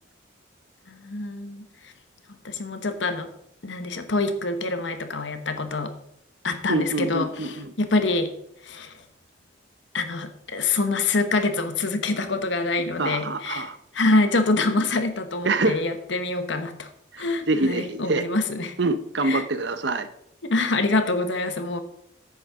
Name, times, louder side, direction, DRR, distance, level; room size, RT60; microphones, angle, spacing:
voice 1, 0.9-1.9 2.4-3.3 3.6-5.9 6.4-8.3 8.6-9.0 9.9-13.7 13.9-16.9 17.2-18.8 19.2-19.4 20.4-21.8, left 2 dB, 80° left, 8 dB, 1.2 m, -25 dB
voice 2, 6.7-7.7 13.0-13.8 15.4-15.8 17.1-18.2 18.8-20.1, right 2 dB, 70° right, 11 dB, 0.8 m, -25 dB
10.5 x 8.4 x 3.7 m, 0.75 s
head